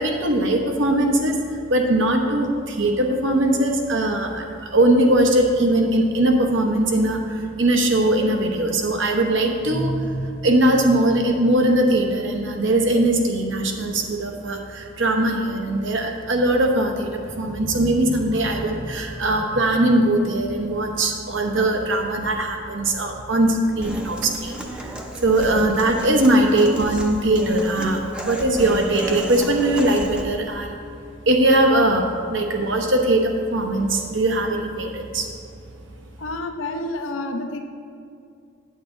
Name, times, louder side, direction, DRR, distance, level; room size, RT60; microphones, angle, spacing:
voice 1, 0.0-30.8 31.3-35.3, right 1 dB, 65° right, 2 dB, 1.0 m, -20 dB
Human voice / Acoustic guitar, 23.8-30.2, right 1 dB, 5° right, 0.6 m, -33 dB
voice 2, 36.2-37.6, left 2 dB, 75° left, 5 dB, 0.8 m, -29 dB
8.5 x 8.5 x 3.9 m, 2.4 s
head